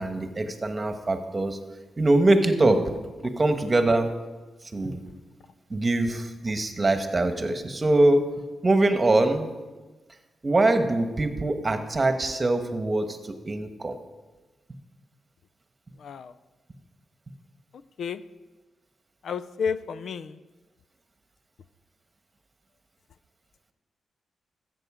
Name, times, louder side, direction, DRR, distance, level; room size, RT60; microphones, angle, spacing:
voice 1, 0.0-1.6 2.0-2.8 3.2-4.1 4.7-5.0 5.7-8.2 8.6-9.5 10.4-14.0, right 2 dB, 30° right, 7 dB, 1.3 m, -23 dB
voice 2, 19.3-20.3, left 6 dB, 70° left, 13 dB, 0.4 m, -30 dB
13.5 x 7.8 x 5.0 m, 1.2 s
cardioid pair, 70°, 0 cm